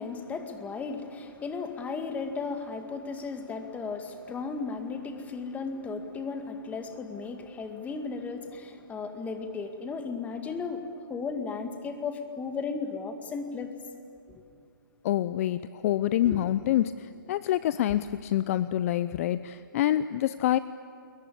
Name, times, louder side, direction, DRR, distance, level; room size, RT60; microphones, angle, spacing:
voice 1, 0.0-10.8 11.1-13.7 14.3-14.4 16.2-16.4, left 4 dB, 15° left, 6 dB, 2.1 m, -35 dB
voice 2, 15.0-20.6, left 12 dB, 40° left, 15 dB, 0.6 m, -26 dB
28.5 x 22.0 x 8.7 m, 2.5 s
hypercardioid pair, 140°, 11 cm